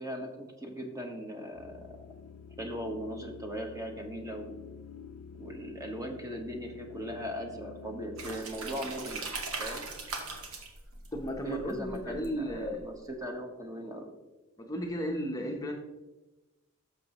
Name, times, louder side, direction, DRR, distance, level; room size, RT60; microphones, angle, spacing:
voice 1, 0.0-2.1 2.6-4.5 5.4-9.2 9.6-9.9 11.4-14.1, equal, 15° right, 3 dB, 1.1 m, -39 dB
sound 1, 1.5-8.4, left 6 dB, 85° left, 0.5 m, -48 dB
sound 2, 8.2-12.8, right 3 dB, 80° right, 1.5 m, -40 dB
voice 2, 11.1-12.8 14.6-15.7, equal, 15° left, 1 dB, 0.8 m, -34 dB
12.0 x 6.8 x 3.0 m, 1.1 s
head